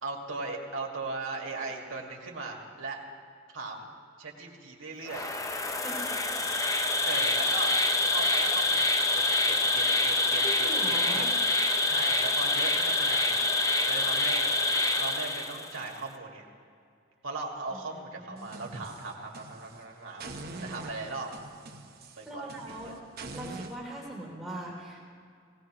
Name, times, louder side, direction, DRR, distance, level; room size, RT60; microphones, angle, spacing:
voice 1, 0.0-3.0 3.5-3.9 4.2-5.3 7.0-8.9 9.1-11.3 11.8-13.5 13.9-14.6 15.0-16.5 17.2-20.3 20.6-21.3 22.1-22.9, right 3 dB, 85° right, 0 dB, 1.9 m, -38 dB
Insect, 5.1-15.8, left 2 dB, 15° left, 0.5 m, -26 dB
voice 2, 5.8-6.2 7.0-7.1 10.4-11.3 17.9-18.8 22.2-22.9 23.3-25.0, right 1 dB, ahead, -4 dB, 2.9 m, -41 dB
sound 1, 18.4-19.8 20.2-23.7, right 2 dB, 50° right, 1.0 m, -44 dB
18.5 x 17.0 x 3.0 m, 2.3 s
head